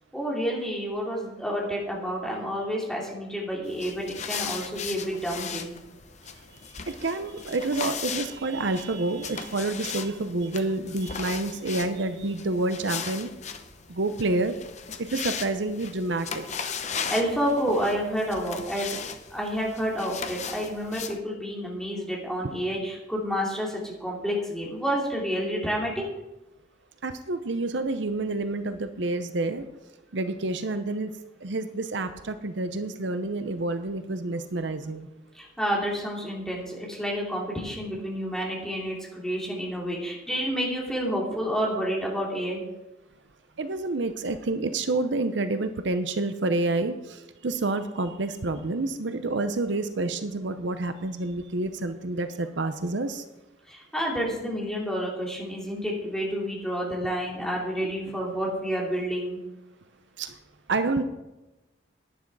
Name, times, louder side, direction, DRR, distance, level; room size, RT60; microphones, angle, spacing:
voice 1, 0.1-5.7 17.1-19.0 19.3-26.0 35.3-42.6 53.7-59.4, equal, 5° left, -3 dB, 2.7 m, -29 dB
sound 1, 3.7-21.2, left 6 dB, 40° left, 0.8 m, -37 dB
voice 2, 6.9-13.3 13.9-14.6 15.0-16.7 27.0-29.7 30.1-31.1 31.4-35.1 43.6-53.2 60.2-60.3 60.7-61.0, right 2 dB, 70° right, 10 dB, 0.7 m, -28 dB
11.0 x 10.0 x 4.8 m, 1.0 s
head